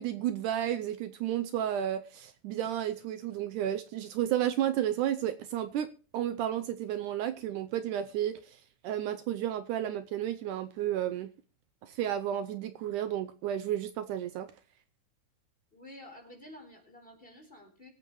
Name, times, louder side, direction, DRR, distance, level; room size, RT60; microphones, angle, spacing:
voice 1, 0.0-11.3 11.8-14.5, right 11 dB, 75° right, 9 dB, 2.1 m, -32 dB
voice 2, 15.7-17.9, left 1 dB, 15° left, 2 dB, 4.3 m, -50 dB
24.5 x 9.0 x 3.1 m, 0.39 s
omnidirectional pair, 3.8 m